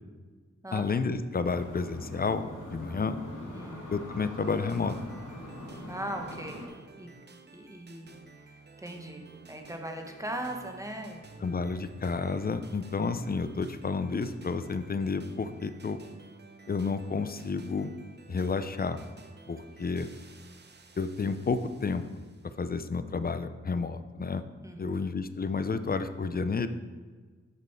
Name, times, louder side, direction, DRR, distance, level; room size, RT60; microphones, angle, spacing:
voice 1, 0.7-2.4 2.7-3.2 3.9-5.0 11.4-16.0 16.7-17.9 18.3-19.0 19.5-20.1 21.0-22.2 22.6-24.4 24.8-26.7, left 4 dB, 30° left, 11 dB, 0.5 m, -31 dB
sound 1, 1.4-6.7, left 1 dB, 85° left, 1.5 m, -42 dB
voice 2, 3.5-3.9 5.9-6.7 7.0-7.1 7.5-8.1 8.4-11.2 24.6-25.1, right 1 dB, 10° right, 3 dB, 1.1 m, -39 dB
sound 2, 4.4-22.6, right 4 dB, 35° right, 0.7 m, -53 dB
6.5 x 5.2 x 4.3 m, 1.5 s
cardioid pair, 45°, 30 cm